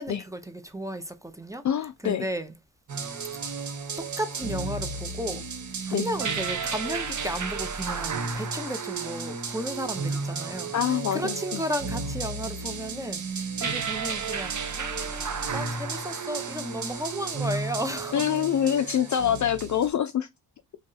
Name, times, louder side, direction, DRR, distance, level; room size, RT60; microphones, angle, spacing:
voice 1, 0.0-2.5 3.4-3.5 4.0-5.5 5.8-18.3, equal, 5° right, 0.7 m, -34 dB
voice 2, 1.6-2.3 5.9-6.1 10.7-11.6 18.1-20.3, left 9 dB, 45° left, 0.4 m, -25 dB
sound 1, 2.9-19.9, right 4 dB, 40° right, 0.9 m, -33 dB
3.2 x 2.6 x 3.9 m
supercardioid pair, 60°, 44 cm